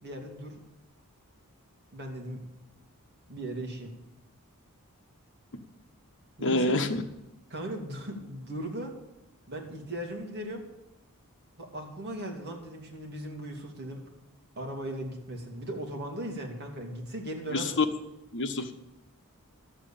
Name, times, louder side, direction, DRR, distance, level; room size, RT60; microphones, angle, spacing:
voice 1, 0.0-0.6 1.9-2.4 3.3-3.9 6.4-6.7 7.5-8.9 9.5-10.6 11.6-14.0 14.6-17.8, right 1 dB, 50° right, 1 dB, 2.7 m, -38 dB
voice 2, 6.4-7.0 17.5-17.8 18.3-18.7, left 2 dB, 55° left, 6 dB, 1.2 m, -26 dB
12.5 x 7.5 x 8.7 m, 0.88 s
head